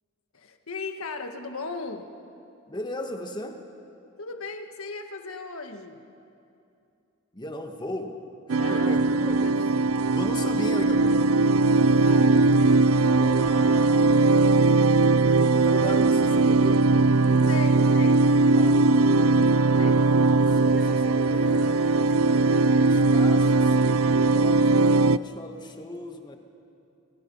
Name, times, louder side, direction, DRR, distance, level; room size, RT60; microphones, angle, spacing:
voice 1, 0.3-2.1 4.2-6.1 8.6-8.9 9.4-9.5 12.0-13.0 17.5-18.3 19.8-20.1, left 3 dB, 85° left, 5 dB, 1.7 m, -37 dB
voice 2, 2.7-3.6 7.3-8.2 8.5-9.7 10.1-14.4 15.2-16.9 17.5-17.7 18.2-19.6 20.0-26.4, left 1 dB, 20° left, 4 dB, 1.7 m, -38 dB
sound 1, 8.5-25.2, right 3 dB, 80° right, 0.5 m, -20 dB
Chuckle chortle, 20.7-24.7, equal, 5° right, 2.1 m, -49 dB
28.5 x 24.5 x 5.6 m, 2.6 s
head